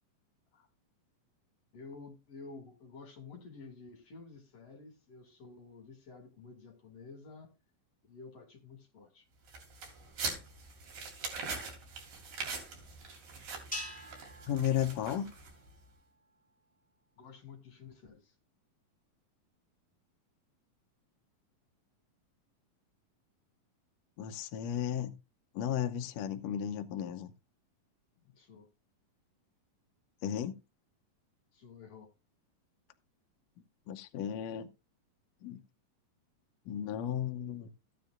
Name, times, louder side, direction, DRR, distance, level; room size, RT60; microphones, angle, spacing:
voice 1, 1.7-7.5 8.1-9.3 17.2-18.3 28.2-28.7 31.5-32.1, left 4 dB, 45° left, 3.4 m, -51 dB
sound 1, 9.5-15.7, right 4 dB, 70° right, 4.0 m, -42 dB
sound 2, 13.7-16.2, left 1 dB, ahead, 5.4 m, -46 dB
voice 2, 14.5-15.3 24.2-25.1 25.5-27.3 30.2-30.6 33.9-34.7 35.4-35.6 36.7-37.7, left 10 dB, 80° left, 1.5 m, -34 dB
14.5 x 9.2 x 2.6 m
omnidirectional pair, 4.1 m